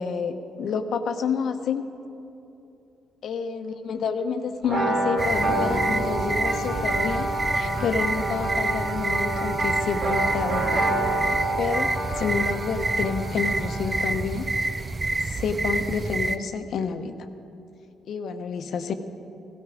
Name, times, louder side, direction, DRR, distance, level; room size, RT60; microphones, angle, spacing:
voice 1, 0.0-1.8 3.2-10.9 11.6-11.9 12.2-14.5 15.2-17.2 18.1-18.9, left 5 dB, 65° left, 8 dB, 0.9 m, -29 dB
sound 1, 4.6-14.2, right 1 dB, 75° right, 3.3 m, -28 dB
sound 2, 5.2-16.4, right 3 dB, 30° right, 0.6 m, -28 dB
16.5 x 13.0 x 5.0 m, 2.9 s
cardioid pair, 90°, 0 cm